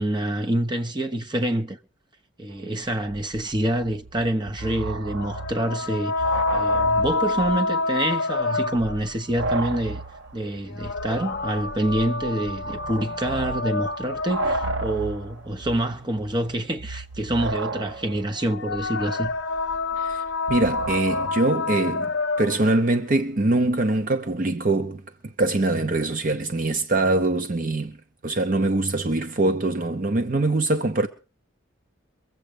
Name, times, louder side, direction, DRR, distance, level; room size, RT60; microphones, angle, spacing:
voice 1, 0.0-1.8 2.4-6.2 6.5-10.0 10.3-19.3, right 1 dB, 25° right, 1.1 m, -26 dB
sound 1, 2.6-2.7 2.9-7.7 8.0-8.1 8.6-21.3, right 3 dB, 75° right, 0.7 m, -34 dB
sound 2, 5.2-9.1 10.7-15.2 18.4-22.8, left 3 dB, 60° left, 0.7 m, -27 dB
voice 2, 20.5-22.1 22.4-28.0 28.2-31.1, right 2 dB, 45° right, 0.7 m, -23 dB
23.0 x 7.7 x 5.1 m
head